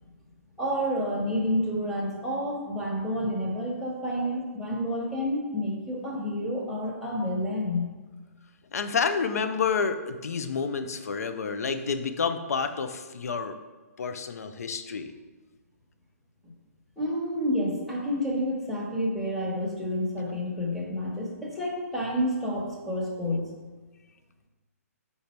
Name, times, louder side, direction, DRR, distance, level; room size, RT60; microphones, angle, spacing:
voice 1, 0.6-7.8 17.0-23.5, equal, ahead, -5 dB, 1.2 m, -29 dB
voice 2, 8.7-13.6 14.0-15.1, left 5 dB, 70° left, 9 dB, 0.6 m, -29 dB
5.2 x 4.2 x 4.4 m, 1.3 s
hypercardioid pair, 145°, 9 cm